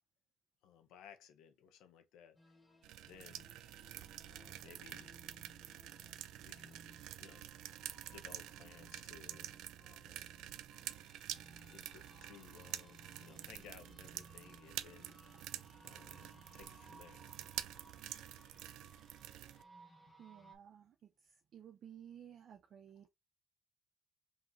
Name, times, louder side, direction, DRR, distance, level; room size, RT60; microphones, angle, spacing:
voice 1, 0.6-2.6 3.0-3.5 4.3-5.2 6.4-6.8 7.2-7.5 8.1-9.5 9.8-10.4 11.6-15.2 15.8-17.2 17.8-17.9, left 8 dB, 90° left, 0.8 m, -59 dB
sound 1, 2.4-20.6, equal, 15° left, 1.0 m, -62 dB
sound 2, 2.8-19.6, right 13 dB, 90° right, 0.3 m, -48 dB
voice 2, 20.2-23.1, right 9 dB, 60° right, 0.7 m, -56 dB
5.6 x 2.9 x 2.6 m
cardioid pair, 100°, 0 cm